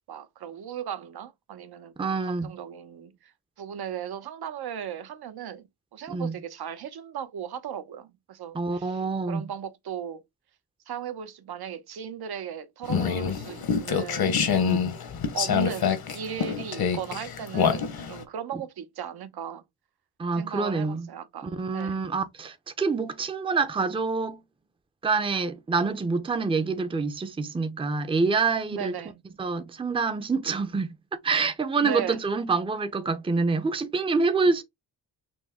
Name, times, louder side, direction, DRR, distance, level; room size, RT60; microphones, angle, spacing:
voice 1, 0.1-3.3 3.6-9.0 9.3-10.2 10.9-14.3 15.3-19.6 20.4-22.0 28.7-29.2 31.8-32.2, right 8 dB, 70° right, 0.9 m, -37 dB
voice 2, 2.0-2.5 6.1-6.4 8.5-9.5 14.6-15.0 20.2-21.1 21.4-24.4 25.0-28.9 29.4-30.9 31.2-34.6, right 4 dB, 15° right, 0.6 m, -26 dB
sound 1, 12.8-18.2, left 7 dB, 65° left, 1.2 m, -26 dB
6.2 x 2.1 x 3.5 m
cardioid pair, 95°, 39 cm